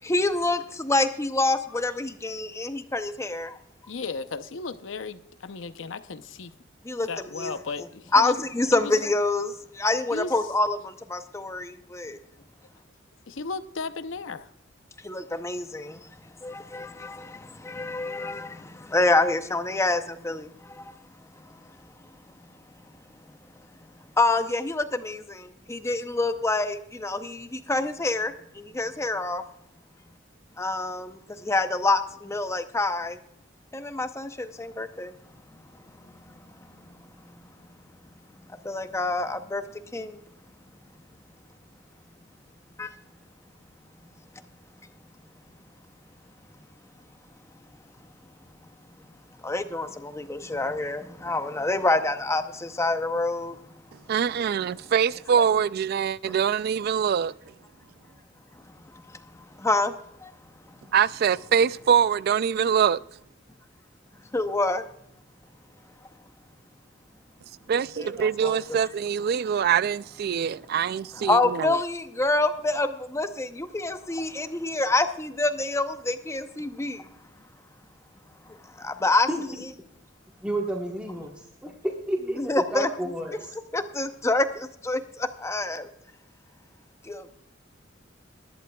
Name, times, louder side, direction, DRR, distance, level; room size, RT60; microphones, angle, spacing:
voice 1, 0.0-3.5 6.9-7.1 7.4-7.5 8.1-12.2 15.0-16.0 16.4-20.5 24.2-29.4 30.6-33.2 33.7-35.1 38.6-39.6 39.9-40.2 42.8-42.9 49.4-53.5 59.6-59.9 60.2-60.3 64.3-64.8 68.0-68.8 71.2-77.0 78.8-79.5 82.4-82.9 83.7-85.9 87.1-87.2, left 2 dB, 15° left, 0.6 m, -27 dB
voice 2, 3.9-6.5 7.1-8.4 8.7-8.9 10.1-10.3 13.3-14.5, left 4 dB, 80° left, 0.7 m, -35 dB
voice 3, 54.1-57.3 60.9-63.0 67.7-71.8, right 7 dB, 55° right, 0.3 m, -24 dB
voice 4, 80.4-81.3 81.6-83.5, right 1 dB, 5° right, 1.2 m, -30 dB
19.0 x 11.5 x 2.3 m
head